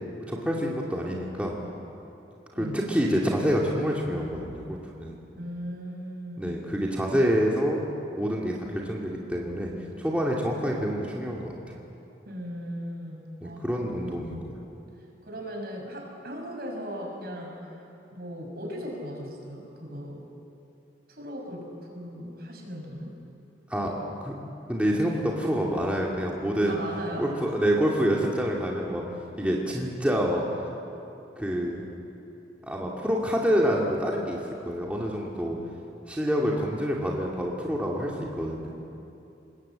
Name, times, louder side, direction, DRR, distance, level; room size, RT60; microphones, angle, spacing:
voice 1, 0.3-1.6 2.5-5.2 6.4-7.8 8.2-9.7 10.0-11.6 13.4-14.5 23.7-23.9 24.2-24.3 24.7-26.8 27.2-29.0 29.4-30.4 31.4-31.8 32.6-35.6 36.1-38.7, equal, 10° right, -3 dB, 2.4 m, -27 dB
voice 2, 5.4-6.6 12.3-14.4 15.2-17.8 18.1-20.3 21.1-23.2 26.7-27.4, equal, 60° right, 0 dB, 6.4 m, -38 dB
27.5 x 21.0 x 8.7 m, 2.8 s
head